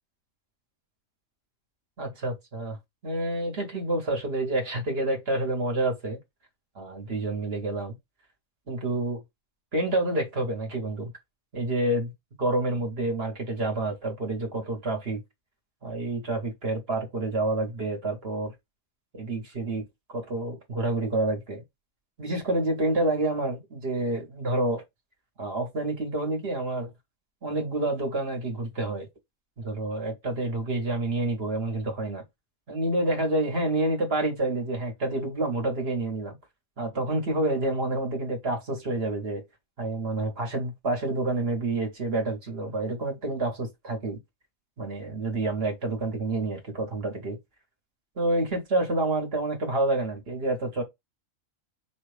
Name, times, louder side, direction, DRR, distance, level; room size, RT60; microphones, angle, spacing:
voice 1, 2.0-2.8 3.0-6.2 6.7-7.9 8.7-9.2 9.7-11.1 11.5-12.1 12.4-15.2 15.8-18.5 19.1-19.8 20.1-21.6 22.2-24.8 25.4-26.9 27.4-29.1 29.6-32.2 32.7-36.4 36.8-39.4 39.8-44.2 44.8-47.4 48.2-50.8, right 2 dB, 50° right, 1.5 m, -28 dB
4.9 x 2.4 x 3.3 m
omnidirectional pair, 1.4 m